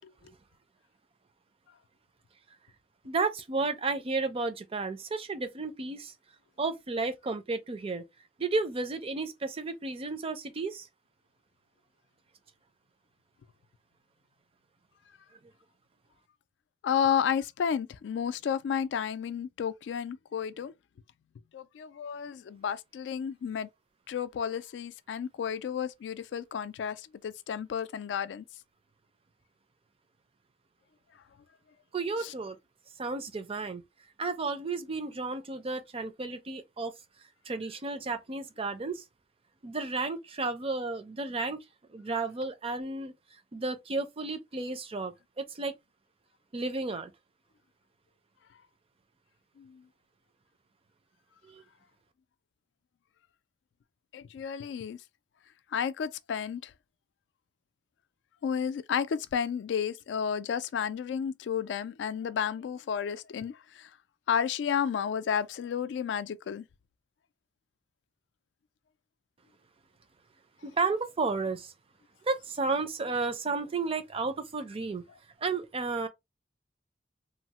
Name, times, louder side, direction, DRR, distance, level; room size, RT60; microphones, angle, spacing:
voice 1, 3.0-6.1 6.6-8.0 8.4-10.9 31.9-32.6 33.0-33.8 34.2-36.9 37.5-39.0 39.6-41.6 41.9-43.1 43.5-45.7 46.5-47.1 51.4-51.6 70.6-71.7 72.2-75.0 75.4-76.1, right 3 dB, 30° right, 0.5 m, -32 dB
voice 2, 16.8-20.7 21.5-23.7 24.1-28.4 32.2-32.3 49.6-49.8 54.1-55.0 55.7-56.7 58.4-63.9 64.3-66.6, left 7 dB, 70° left, 0.3 m, -32 dB
3.1 x 2.0 x 2.8 m
head